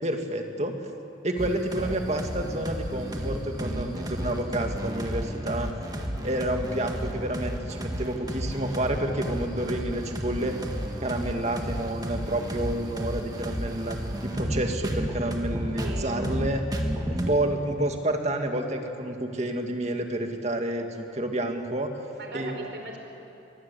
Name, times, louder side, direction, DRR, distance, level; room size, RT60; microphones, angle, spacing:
voice 1, 0.0-0.8 1.2-5.7 6.2-10.6 11.0-16.6 17.1-21.9 22.3-22.5, right 1 dB, 35° right, 4 dB, 2.0 m, -29 dB
sound 1, 1.4-17.3, equal, 20° right, 1.8 m, -32 dB
voice 2, 15.8-16.2 22.1-23.0, right 1 dB, 65° right, 3 dB, 4.0 m, -39 dB
23.0 x 20.5 x 8.4 m, 2.9 s
head